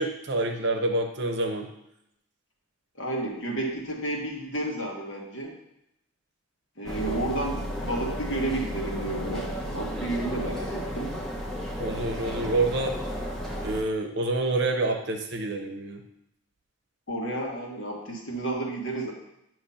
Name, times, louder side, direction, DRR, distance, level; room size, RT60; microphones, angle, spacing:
voice 1, 0.0-1.7 11.8-13.0 13.6-16.0, right 2 dB, 55° right, 4 dB, 0.8 m, -27 dB
voice 2, 3.0-5.5 6.8-11.1 17.1-19.1, right 2 dB, 65° left, -1 dB, 1.5 m, -31 dB
sound 1, 6.9-13.8, equal, ahead, 0.7 m, -33 dB
8.8 x 3.1 x 5.6 m, 0.82 s
head